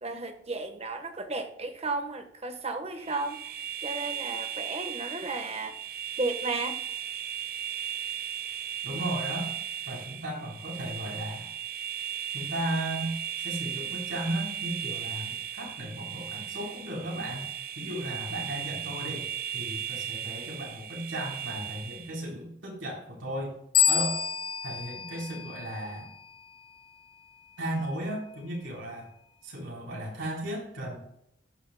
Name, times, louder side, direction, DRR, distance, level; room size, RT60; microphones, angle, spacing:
voice 1, 0.0-5.8 6.2-6.8, right 3 dB, 35° right, 7 dB, 1.2 m, -34 dB
sound 1, 3.0-22.2, right 10 dB, 50° right, 0.8 m, -36 dB
voice 2, 8.8-9.5 9.9-11.5 12.3-17.5 17.8-19.3 19.5-23.6 23.9-24.2 24.6-26.1 27.6-29.1 29.4-31.0, right 1 dB, 85° right, -3 dB, 3.8 m, -35 dB
sound 2, 23.7-26.2, left 8 dB, 30° left, 0.7 m, -28 dB
16.0 x 6.8 x 2.2 m, 0.78 s
head